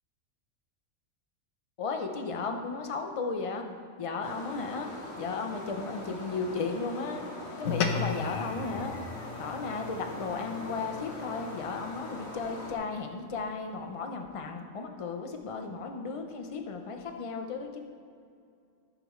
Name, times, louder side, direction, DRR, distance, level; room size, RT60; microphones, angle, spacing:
voice 1, 1.8-3.7 4.0-4.9 5.2-7.2 7.6-8.9 9.4-17.8, left 4 dB, 35° left, 4 dB, 0.6 m, -35 dB
sound 1, 4.2-12.7, left 1 dB, 50° left, 1.5 m, -42 dB
sound 2, 7.6-12.3, left 5 dB, 90° left, 1.2 m, -36 dB
14.0 x 7.5 x 3.2 m, 2.4 s
omnidirectional pair, 1.4 m